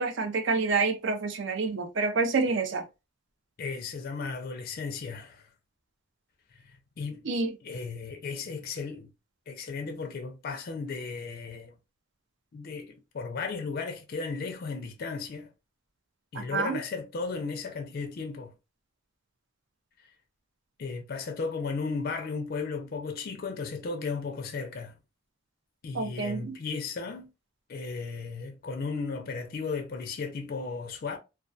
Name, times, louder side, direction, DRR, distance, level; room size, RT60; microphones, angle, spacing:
voice 1, 0.0-2.9 7.2-7.5 16.3-16.8 25.9-26.6, right 4 dB, 60° right, 0.5 m, -28 dB
voice 2, 3.6-5.5 6.6-7.2 7.6-9.1 9.5-11.7 12.5-15.5 16.3-18.5 20.8-24.9 25.8-27.3 27.7-31.2, left 4 dB, 45° left, 0.4 m, -35 dB
2.2 x 2.2 x 2.5 m
head